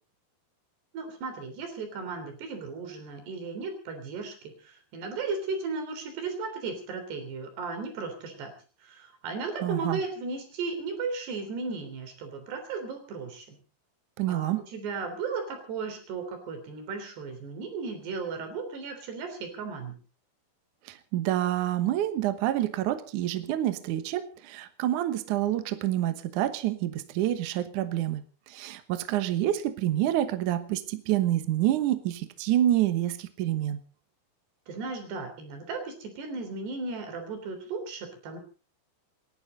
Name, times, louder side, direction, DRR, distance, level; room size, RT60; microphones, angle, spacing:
voice 1, 0.9-4.4 4.6-8.5 8.8-13.6 14.3-19.9 34.7-38.4, right 4 dB, 90° right, 6 dB, 5.6 m, -35 dB
voice 2, 9.6-10.0 14.2-14.6 20.9-33.8, right 13 dB, 65° right, 10 dB, 2.2 m, -27 dB
28.5 x 11.0 x 4.0 m, 0.36 s
omnidirectional pair, 4.6 m